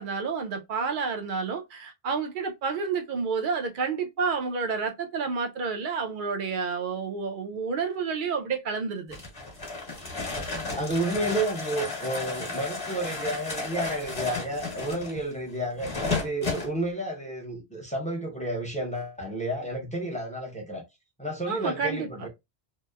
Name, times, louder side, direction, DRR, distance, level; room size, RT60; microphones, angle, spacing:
voice 1, 0.0-9.2 21.5-22.3, right 5 dB, 60° right, 0.6 m, -30 dB
sound 1, 9.1-16.7, left 3 dB, 35° left, 1.1 m, -33 dB
voice 2, 10.3-20.8 21.2-22.3, right 1 dB, 10° left, 0.6 m, -31 dB
2.8 x 2.0 x 2.2 m
omnidirectional pair, 1.0 m